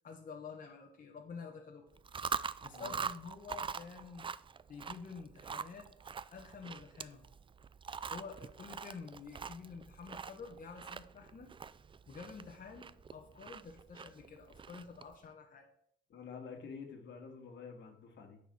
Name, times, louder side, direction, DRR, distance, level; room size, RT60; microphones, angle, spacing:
voice 1, 0.0-1.9 2.6-4.3 4.7-5.9 6.3-7.2 8.1-11.5 12.1-15.7, left 5 dB, 45° left, 1 dB, 1.5 m, -49 dB
Chewing mastication, 1.9-15.1, right 6 dB, 25° right, 0.4 m, -44 dB
voice 2, 2.7-3.1 16.1-18.4, left 5 dB, 65° left, 4 dB, 2.0 m, -48 dB
9.4 x 4.8 x 6.1 m, 0.70 s
cardioid pair, 90°, 20 cm